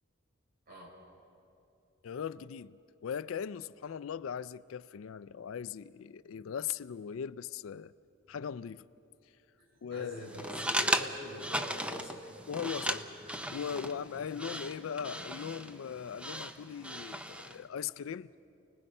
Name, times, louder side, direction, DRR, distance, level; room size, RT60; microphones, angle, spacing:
voice 1, 2.0-2.8 3.0-7.9 8.3-8.9 9.8-10.2 12.5-13.0 13.4-18.3, left 7 dB, 75° left, 0.4 m, -39 dB
voice 2, 9.6-12.3 12.7-13.0 13.8-13.9, equal, 50° right, 3.9 m, -45 dB
sound 1, 10.3-17.6, right 1 dB, 5° right, 0.6 m, -37 dB
29.5 x 19.5 x 5.4 m
head